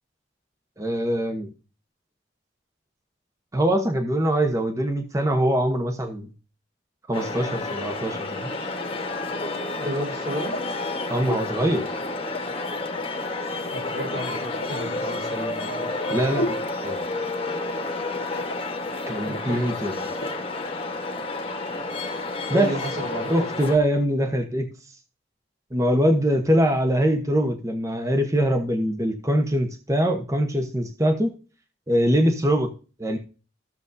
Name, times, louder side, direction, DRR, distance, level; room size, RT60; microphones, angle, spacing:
voice 1, 0.8-1.5 3.5-6.3 7.1-8.5 11.1-11.9 16.1-16.6 16.8-17.0 19.1-20.0 22.5-22.7 23.3-24.7 25.7-31.4 31.9-32.7 33.0-33.2, equal, 15° right, 5 dB, 1.0 m, -23 dB
sound 1, 7.1-23.8, left 2 dB, 30° left, 1.2 m, -30 dB
voice 2, 9.8-10.6 13.7-15.9 18.9-19.7 22.5-23.4, right 1 dB, 50° right, 0 dB, 4.5 m, -33 dB
sound 2, 10.5-11.0 11.2-11.5 11.8-13.1 13.7-14.7 16.3-16.7 17.7-18.1 18.4-18.6 18.9-19.0 19.2-19.4 20.1-20.3, equal, 70° left, 1.2 m, -33 dB
14.5 x 7.0 x 2.6 m, 0.35 s
head